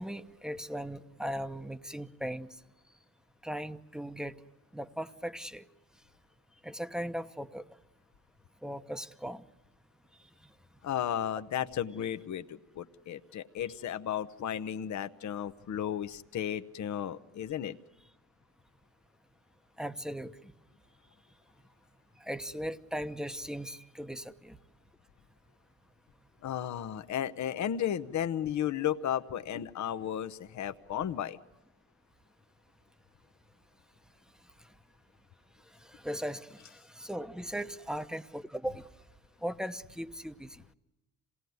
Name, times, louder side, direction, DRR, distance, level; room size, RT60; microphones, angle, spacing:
voice 1, 0.0-2.5 3.4-4.4 4.7-5.6 6.6-7.6 8.6-9.4 19.8-20.3 22.3-24.6 35.9-38.9 39.4-40.6, equal, ahead, 10 dB, 0.9 m, -38 dB
voice 2, 10.8-17.8 26.4-31.4, left 10 dB, 55° left, 10 dB, 0.8 m, -34 dB
27.0 x 18.0 x 9.4 m, 0.98 s
cardioid pair, 80°, 35 cm